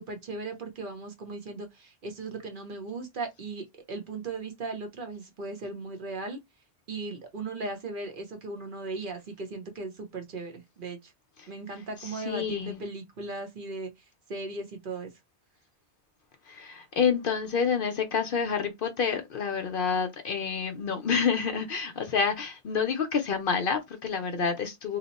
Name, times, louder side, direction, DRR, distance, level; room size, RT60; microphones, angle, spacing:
voice 1, 0.0-6.4 6.9-11.1 11.5-13.9 14.3-15.1, right 3 dB, 55° right, 0.9 m, -37 dB
voice 2, 12.0-12.8 16.5-25.0, left 6 dB, 60° left, 0.7 m, -28 dB
2.9 x 2.1 x 3.9 m
omnidirectional pair, 1.2 m